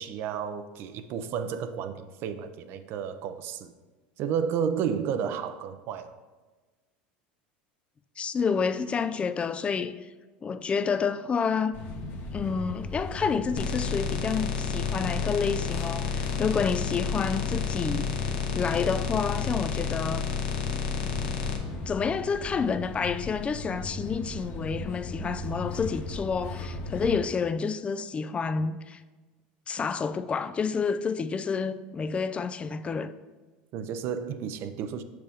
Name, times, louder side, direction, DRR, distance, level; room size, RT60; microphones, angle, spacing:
voice 1, 0.0-3.7 4.2-6.1 33.7-35.0, right 7 dB, 55° right, 0.6 m, -32 dB
voice 2, 8.2-10.0 10.4-11.8 12.3-18.1 18.5-20.3 21.9-29.0 29.7-33.1, left 5 dB, 25° left, 0.4 m, -29 dB
sound 1, 11.7-27.1, left 2 dB, 50° left, 1.3 m, -37 dB
sound 2, 13.6-21.6, left 6 dB, 80° left, 1.1 m, -31 dB
7.7 x 6.5 x 3.5 m
supercardioid pair, 100°, 5 cm